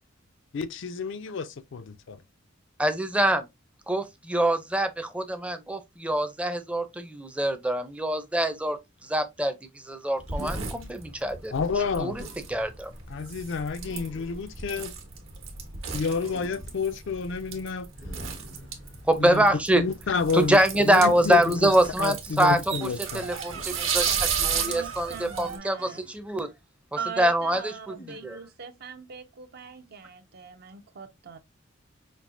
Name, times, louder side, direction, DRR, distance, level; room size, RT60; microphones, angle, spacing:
voice 1, 0.5-2.2 11.5-12.2 13.1-14.9 15.9-17.9 19.2-19.5 19.7-20.6 20.8-21.7 22.0-23.3, left 5 dB, 65° left, 0.5 m, -29 dB
voice 2, 2.8-3.5 3.9-11.5 12.0-12.2 12.5-12.9 19.1-19.8 20.3-24.1 24.4-26.5 27.2-27.9 28.2-28.4, right 1 dB, 5° right, 0.5 m, -25 dB
sound 1, 10.2-25.6, right 6 dB, 70° right, 1.3 m, -34 dB
Human voice, 10.3-10.9 12.1-12.5 13.8-14.5 16.2-16.9 18.0-19.2 21.2-21.5 23.5-23.8 25.7-26.3 27.9-28.4, equal, 85° left, 1.2 m, -46 dB
voice 3, 23.9-24.2 24.5-26.0 26.9-31.4, right 6 dB, 50° right, 0.6 m, -40 dB
5.3 x 2.8 x 2.6 m
head